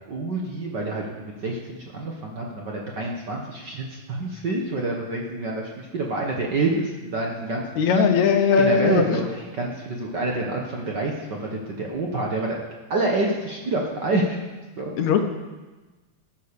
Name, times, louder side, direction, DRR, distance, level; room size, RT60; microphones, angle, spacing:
voice 1, 0.1-7.6 7.9-8.2 8.6-9.3 9.6-12.6 12.9-14.4 14.8-14.9, right 2 dB, 70° right, -1 dB, 1.0 m, -27 dB
voice 2, 7.8-9.2 15.0-15.2, left 6 dB, 70° left, 6 dB, 1.9 m, -19 dB
14.0 x 9.3 x 6.8 m, 1.2 s
omnidirectional pair, 3.9 m